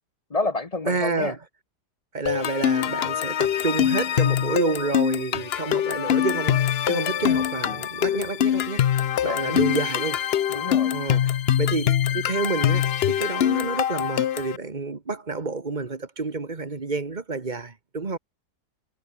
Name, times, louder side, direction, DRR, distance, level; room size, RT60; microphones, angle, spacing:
voice 1, 0.3-1.4 9.2-9.6 10.5-10.9, left 2 dB, 25° left, 1.0 m, -29 dB
voice 2, 0.9-1.4 2.1-8.8 9.2-10.2 10.9-11.3 11.6-18.2, right 3 dB, 30° right, 1.5 m, -29 dB
sound 1, 2.3-14.6, left 10 dB, 70° left, 0.6 m, -24 dB
omnidirectional pair, 1.8 m